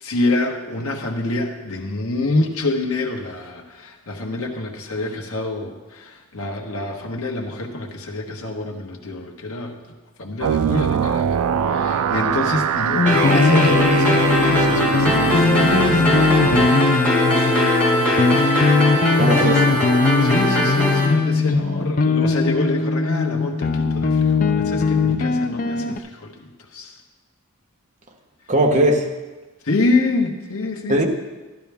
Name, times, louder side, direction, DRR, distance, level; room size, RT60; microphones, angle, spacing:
voice 1, 0.0-11.4 11.7-16.0 20.2-26.9 29.6-31.1, left 2 dB, 75° left, 2 dB, 1.3 m, -26 dB
sound 1, 10.4-16.7, right 7 dB, 80° right, 0.4 m, -22 dB
sound 2, 13.0-26.0, left 4 dB, 35° left, 0.4 m, -20 dB
sound 3, 13.1-21.1, left 1 dB, 5° left, 3.4 m, -20 dB
voice 2, 19.2-19.7 28.5-29.1 30.9-31.1, right 1 dB, 35° right, 2 dB, 1.1 m, -18 dB
12.0 x 11.5 x 3.5 m, 1.2 s
head